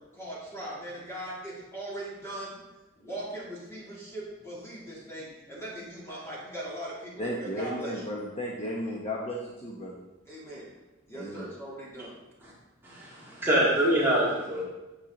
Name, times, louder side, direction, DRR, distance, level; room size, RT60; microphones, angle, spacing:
voice 1, 0.1-2.6 3.0-8.0 10.3-10.7 11.1-12.1, right 1 dB, 15° left, -6 dB, 2.6 m, -39 dB
voice 2, 7.2-9.9 11.1-11.5, equal, 30° left, -2 dB, 0.9 m, -34 dB
voice 3, 12.8-14.6, right 1 dB, 10° right, -7 dB, 2.1 m, -25 dB
8.7 x 6.6 x 3.9 m, 1.1 s
head